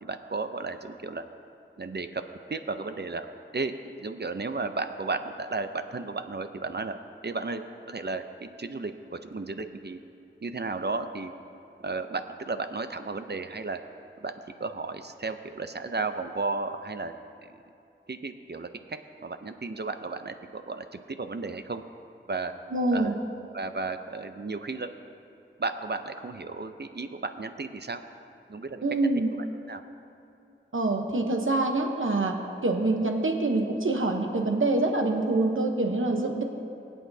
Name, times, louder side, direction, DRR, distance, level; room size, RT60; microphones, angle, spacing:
voice 1, 0.0-1.2 1.8-2.2 2.5-3.7 4.0-7.0 7.2-7.6 7.9-10.0 10.4-11.3 11.8-13.8 14.2-14.3 14.6-17.1 17.4-17.6 18.1-21.8 22.3-22.5 22.9-23.2 23.5-24.9 25.6-28.0 28.5-29.2 29.7-29.8, right 3 dB, 55° right, 8 dB, 0.6 m, -34 dB
voice 2, 22.7-23.1 28.8-29.3 30.7-36.4, right 2 dB, 80° right, 3 dB, 0.9 m, -25 dB
23.0 x 8.4 x 2.7 m, 2.8 s
wide cardioid pair, 45°, 21 cm